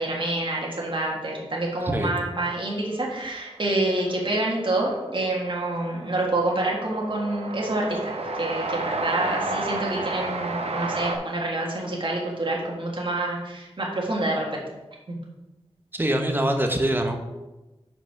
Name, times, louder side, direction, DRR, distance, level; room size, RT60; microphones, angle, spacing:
voice 1, 0.0-14.6 15.1-15.2, right 2 dB, 50° right, -3 dB, 1.7 m, -27 dB
Train, 3.7-3.8 4.0-11.2, right 3 dB, 75° right, 0.8 m, -31 dB
voice 2, 15.9-17.2, right 1 dB, 20° right, 4 dB, 1.0 m, -23 dB
5.5 x 5.2 x 5.8 m, 1.0 s
wide cardioid pair, 85°, 11 cm